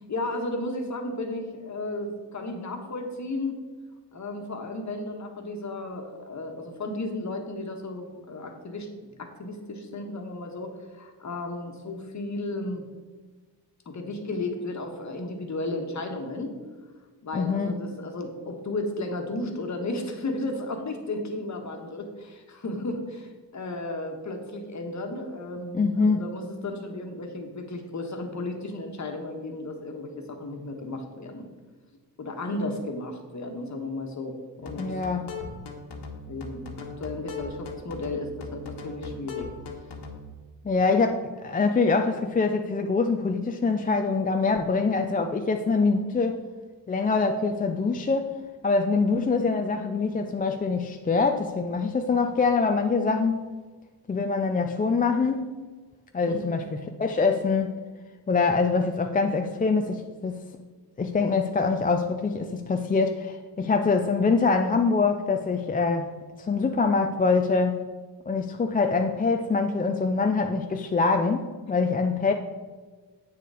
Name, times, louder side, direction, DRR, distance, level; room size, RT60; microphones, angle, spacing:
voice 1, 0.1-3.6 4.1-12.8 13.8-16.5 17.2-31.5 32.2-34.4 34.6-35.0 36.3-39.5 56.3-56.6, left 2 dB, 40° left, 4 dB, 1.4 m, -34 dB
voice 2, 17.3-17.8 25.7-26.2 34.8-35.3 40.6-46.4 46.9-48.3 48.6-53.5 54.1-55.5 56.1-57.8 58.3-60.4 61.0-66.1 66.4-67.8 68.3-72.3, left 4 dB, 20° left, 5 dB, 0.4 m, -24 dB
sound 1, 34.6-40.3, left 4 dB, 65° left, 1.5 m, -39 dB
8.3 x 6.7 x 4.9 m, 1.4 s
cardioid pair, 125°, 43 cm